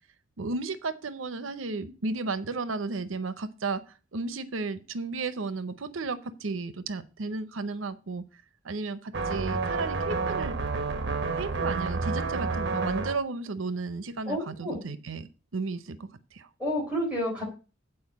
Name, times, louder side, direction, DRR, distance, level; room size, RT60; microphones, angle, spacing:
voice 1, 0.4-8.2 8.6-10.6 11.4-16.5, right 3 dB, 90° right, 13 dB, 0.7 m, -34 dB
sound 1, 9.1-13.2, right 4 dB, 60° right, 1.1 m, -29 dB
voice 2, 14.3-14.8 16.6-17.4, equal, 5° right, -4 dB, 3.9 m, -30 dB
8.7 x 4.5 x 7.1 m, 0.33 s
head